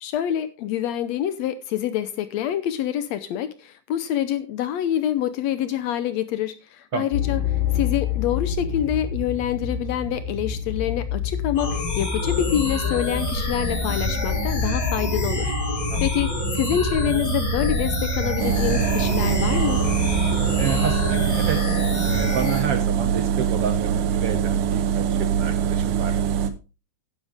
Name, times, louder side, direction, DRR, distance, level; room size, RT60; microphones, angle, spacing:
voice 1, 0.0-19.8, left 11 dB, 70° left, 1.8 m, -26 dB
sound 1, 7.1-21.5, left 2 dB, 20° left, 3.1 m, -28 dB
sound 2, 11.6-22.6, left 2 dB, 40° left, 5.0 m, -28 dB
sound 3, 18.4-26.5, right 8 dB, 85° right, 2.4 m, -23 dB
voice 2, 20.6-21.6 22.0-26.2, right 7 dB, 60° right, 1.7 m, -29 dB
11.0 x 10.0 x 3.5 m
omnidirectional pair, 3.5 m